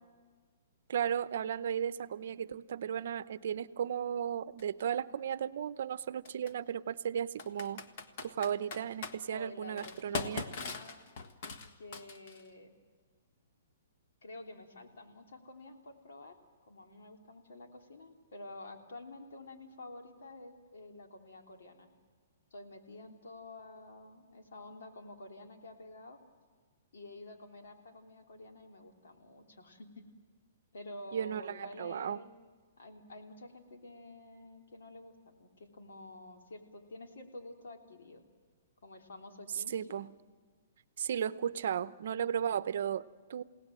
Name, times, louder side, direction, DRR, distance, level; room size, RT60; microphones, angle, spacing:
voice 1, 0.9-7.9 8.2-10.5 31.1-32.2 39.5-40.1 41.0-43.4, right 8 dB, 60° right, 15 dB, 0.7 m, -35 dB
Computer keyboard, 4.6-4.7 6.3-6.5 7.4-9.2 9.8-12.5, left 4 dB, 45° left, 1.4 m, -40 dB
voice 2, 9.3-11.0 11.4-12.7 14.2-16.4 16.6-21.9 22.5-26.2 26.9-30.0 30.7-32.3 32.8-38.2 38.8-40.0, left 2 dB, 80° left, 2 dB, 3.4 m, -50 dB
29.0 x 17.5 x 7.7 m, 1.5 s
hypercardioid pair, 165°, 0 cm